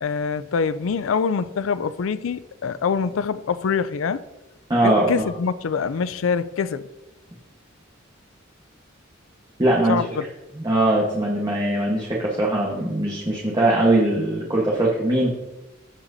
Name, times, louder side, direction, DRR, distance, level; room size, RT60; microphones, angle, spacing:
voice 1, 0.0-4.2 4.8-6.8 9.9-10.2, left 5 dB, 75° left, 0.4 m, -25 dB
voice 2, 4.7-5.3 9.6-10.0 10.6-15.3, right 1 dB, 20° right, 1.3 m, -21 dB
15.5 x 5.8 x 2.7 m
head